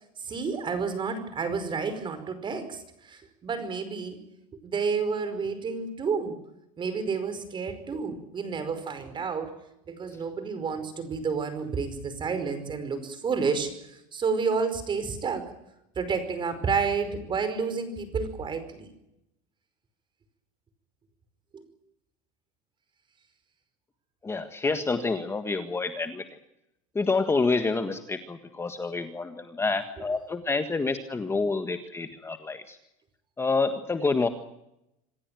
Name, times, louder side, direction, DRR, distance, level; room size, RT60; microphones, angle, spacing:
voice 1, 0.2-4.2 4.6-6.4 6.8-9.5 9.9-15.5 16.0-18.9 21.5-21.6, right 5 dB, 25° right, 11 dB, 5.2 m, -30 dB
voice 2, 24.2-26.2 26.9-32.8 33.4-34.3, left 3 dB, 15° left, 8 dB, 1.6 m, -28 dB
27.0 x 15.5 x 9.2 m, 0.85 s
supercardioid pair, 130°, 18 cm